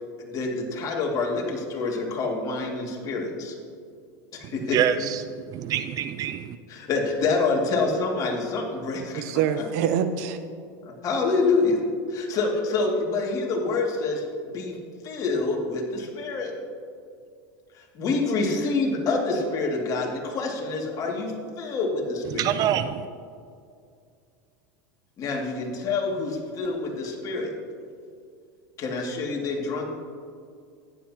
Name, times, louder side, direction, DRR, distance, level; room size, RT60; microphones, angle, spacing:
voice 1, 0.2-3.6 4.3-4.8 6.7-9.2 10.8-11.8 12.1-14.2 14.5-14.8 15.0-16.5 17.7-22.5 25.2-27.5 28.8-29.8, left 3 dB, 40° left, -1 dB, 2.2 m, -27 dB
voice 2, 4.7-5.2 5.5-6.6 22.3-23.0, right 10 dB, 40° right, 11 dB, 0.4 m, -25 dB
voice 3, 9.1-10.4, right 8 dB, 65° right, 10 dB, 0.8 m, -25 dB
14.5 x 10.0 x 2.9 m, 2.3 s
supercardioid pair, 115°, 9 cm